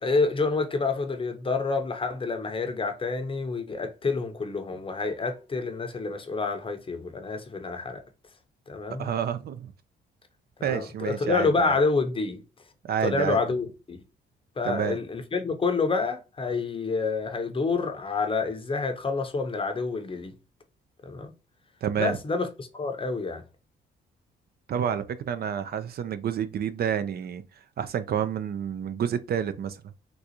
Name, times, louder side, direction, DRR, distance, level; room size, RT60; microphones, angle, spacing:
voice 1, 0.0-8.0 8.7-9.1 10.7-12.4 13.0-14.0 14.6-20.3 21.0-21.3 22.0-23.4, left 4 dB, 25° left, 0.7 m, -28 dB
voice 2, 9.0-9.7 10.6-11.8 12.8-13.4 14.6-15.0 21.8-22.2 24.7-27.4 27.8-29.9, right 8 dB, 50° right, 0.4 m, -29 dB
3.8 x 2.3 x 2.8 m
cardioid pair, 90°, 20 cm